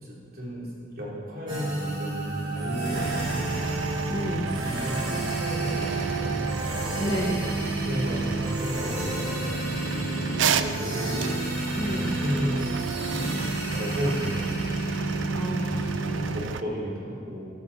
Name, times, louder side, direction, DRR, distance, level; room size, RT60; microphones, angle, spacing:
voice 1, 0.0-3.5 4.1-6.5 7.3-7.4 7.8-11.2 11.8-12.7 13.2-13.3 13.7-15.3 16.0-17.5, equal, 50° right, -5 dB, 3.4 m, -34 dB
sound 1, 1.5-16.4, right 2 dB, 25° right, 3.4 m, -30 dB
sound 2, 2.9-16.6, right 6 dB, 90° right, 0.5 m, -33 dB
voice 2, 4.1-4.6 7.0-7.4 11.7-12.2 15.3-16.1, equal, 20° left, -2 dB, 1.2 m, -31 dB
14.5 x 11.0 x 4.2 m, 2.2 s
head